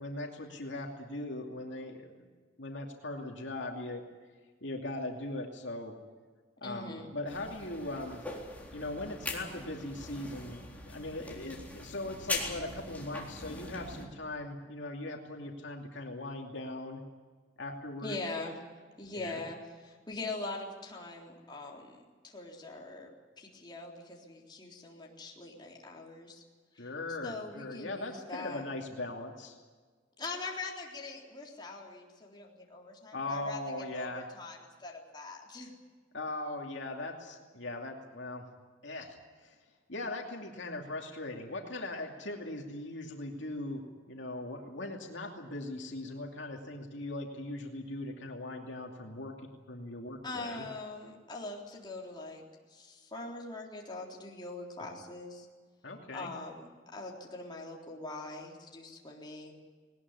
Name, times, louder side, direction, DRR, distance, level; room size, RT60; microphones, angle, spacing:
voice 1, 0.0-2.1 2.6-4.0 4.6-5.9 6.6-8.2 8.7-17.0 17.6-18.2 19.1-19.4 26.8-29.5 33.1-34.3 36.1-38.4 38.8-39.6 39.9-43.8 44.1-49.3 49.7-50.6 54.8-54.9 55.8-56.3, left 2 dB, 70° left, 1 dB, 2.6 m, -39 dB
voice 2, 6.6-7.1 18.0-18.6 19.0-23.1 23.4-26.4 26.7-26.9 27.2-28.6 30.2-33.6 33.9-35.7 50.2-52.4 52.7-55.5 56.1-56.6 56.9-59.5, left 2 dB, 25° left, -1 dB, 3.8 m, -42 dB
sound 1, 7.3-14.1, left 2 dB, 10° left, 3.9 m, -41 dB
19.5 x 19.5 x 9.8 m, 1.5 s
head